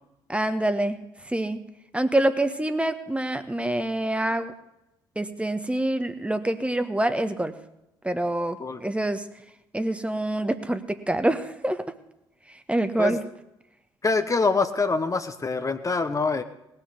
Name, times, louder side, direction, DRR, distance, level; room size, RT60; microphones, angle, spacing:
voice 1, 0.3-1.6 1.9-4.5 5.1-7.5 8.0-9.3 9.7-11.8 12.7-13.2, right 1 dB, 10° right, 9 dB, 1.3 m, -26 dB
voice 2, 14.0-16.4, left 4 dB, 25° left, 9 dB, 1.1 m, -25 dB
18.5 x 6.7 x 8.3 m, 0.87 s
figure-of-eight pair, 45°, 12 cm